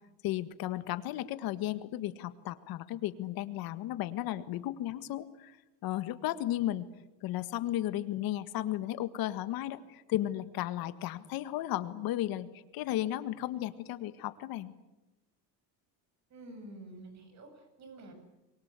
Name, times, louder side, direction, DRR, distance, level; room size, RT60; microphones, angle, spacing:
voice 1, 0.2-5.6 5.8-6.9 7.2-12.5 12.7-14.7, left 13 dB, 65° left, 12 dB, 1.8 m, -34 dB
voice 2, 16.3-18.1, right 2 dB, 45° right, 7 dB, 7.5 m, -49 dB
28.0 x 23.5 x 8.4 m, 1.0 s
cardioid pair, 145°, 38 cm